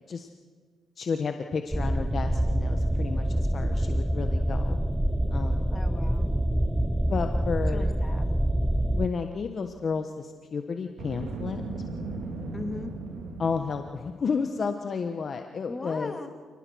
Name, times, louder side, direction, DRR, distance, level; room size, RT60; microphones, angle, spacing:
voice 1, 1.0-4.8 5.3-5.7 7.1-7.9 8.9-11.6 13.4-16.2, left 5 dB, 45° left, 6 dB, 1.3 m, -31 dB
sound 1, 1.7-9.1, right 1 dB, 5° right, 0.8 m, -26 dB
voice 2, 5.7-6.3 7.7-8.3 12.5-12.9 15.7-16.3, left 2 dB, 20° left, 5 dB, 2.8 m, -38 dB
Boom, 10.9-14.0, right 3 dB, 80° right, 4.1 m, -36 dB
27.5 x 19.0 x 6.4 m, 1.6 s
cardioid pair, 90°, 0 cm